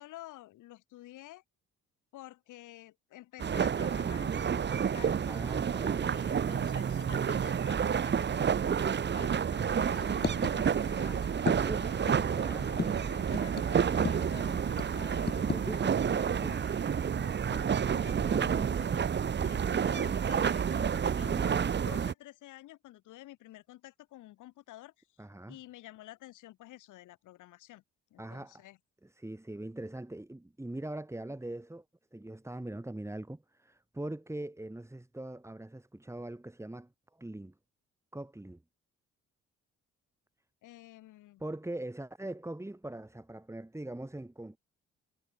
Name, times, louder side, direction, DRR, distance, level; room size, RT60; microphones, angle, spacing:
voice 1, 0.0-1.4 2.1-5.2 5.8-9.4 9.7-11.3 11.8-15.5 16.0-19.0 19.4-25.1 25.5-27.8 28.1-28.8 40.6-41.4, left 16 dB, 85° left, 1.9 m, -51 dB
sound 1, 3.4-22.1, right 7 dB, 35° right, 0.9 m, -29 dB
voice 2, 5.3-6.2 11.6-12.1 12.3-12.8 15.3-16.6 25.2-25.6 28.2-28.6 29.0-31.8 32.1-37.5 38.1-38.6 41.4-44.6, right 1 dB, 10° right, 3.9 m, -42 dB
sound 2, 9.5-15.8, left 6 dB, 35° left, 1.6 m, -39 dB
cardioid pair, 90°, 30 cm